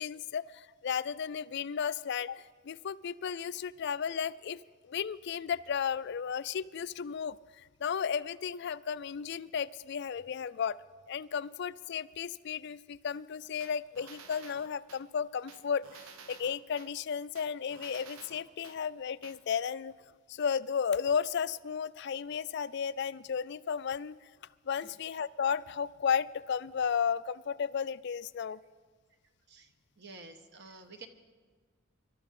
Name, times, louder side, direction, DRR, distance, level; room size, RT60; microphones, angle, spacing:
voice 1, 0.0-10.8 11.1-19.9 20.3-24.3 24.7-28.6, left 7 dB, 55° left, 17 dB, 0.4 m, -34 dB
sound 1, 13.6-15.0 15.5-16.9 17.4-18.8 19.2-19.4, right 5 dB, 90° right, 0.9 m, -51 dB
voice 2, 29.5-31.1, right 3 dB, 55° right, 7 dB, 1.2 m, -50 dB
25.0 x 12.5 x 3.7 m, 1.5 s
head